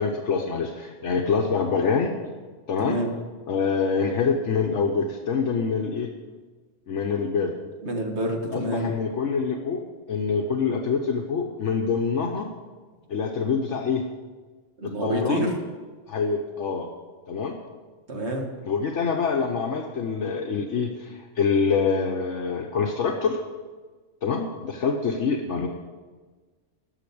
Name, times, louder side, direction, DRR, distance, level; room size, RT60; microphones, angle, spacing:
voice 1, 0.0-2.2 2.7-3.0 3.5-6.1 6.9-7.5 8.5-9.8 10.1-12.5 13.1-14.0 14.8-15.5 16.1-16.9 17.3-17.6 18.7-23.4 24.2-25.7, left 5 dB, 65° left, 2 dB, 1.2 m, -25 dB
voice 2, 2.8-3.1 7.8-8.9 14.8-15.5 18.1-18.4, right 1 dB, 60° right, 1 dB, 2.0 m, -27 dB
11.5 x 6.6 x 8.5 m, 1.4 s
omnidirectional pair, 1.3 m